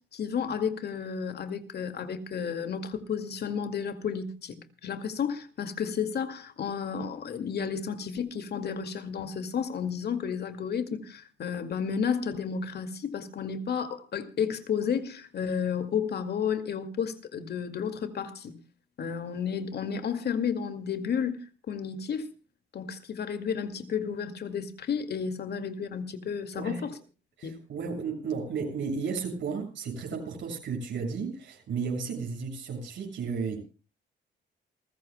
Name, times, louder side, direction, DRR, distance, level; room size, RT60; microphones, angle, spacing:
voice 1, 0.1-4.6 4.8-18.5 19.0-21.4 21.7-22.3 22.7-26.9 27.4-27.5, left 7 dB, 55° left, 2.1 m, -32 dB
voice 2, 26.5-26.9 27.4-33.6, right 5 dB, 70° right, 6.9 m, -33 dB
28.0 x 15.0 x 2.2 m
cardioid pair, 90°, 20 cm